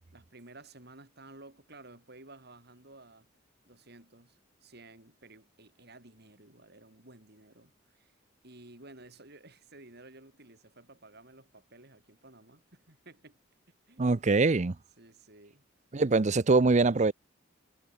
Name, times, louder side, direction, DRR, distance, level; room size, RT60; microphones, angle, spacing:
voice 1, 0.1-3.3 3.6-8.2 8.4-13.4 13.9-14.2 15.0-15.7, right 2 dB, 55° right, 5.9 m, -54 dB
voice 2, 14.0-14.7 15.9-17.1, right 3 dB, 40° right, 0.6 m, -23 dB
head